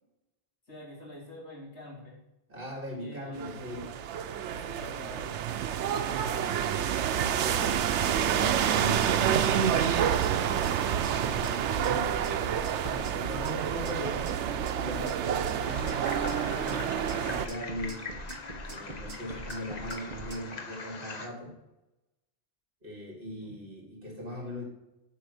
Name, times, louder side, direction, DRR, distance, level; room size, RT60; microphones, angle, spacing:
voice 1, 0.7-2.2 3.0-3.9 4.5-5.5 6.0-6.6 23.4-23.6, left 1 dB, 80° left, -5 dB, 3.5 m, -46 dB
voice 2, 2.5-3.9 4.6-4.8 7.2-10.3 11.0-12.2 12.8-14.3 14.8-18.1 18.6-21.6 22.8-24.6, equal, 50° right, -1 dB, 2.6 m, -40 dB
sound 1, 3.4-17.5, right 9 dB, 85° right, 0.9 m, -28 dB
sound 2, 7.6-20.4, right 1 dB, 35° right, 1.0 m, -42 dB
sound 3, 15.6-21.3, left 4 dB, 40° left, 1.0 m, -42 dB
7.6 x 5.4 x 6.6 m, 0.96 s
omnidirectional pair, 1.2 m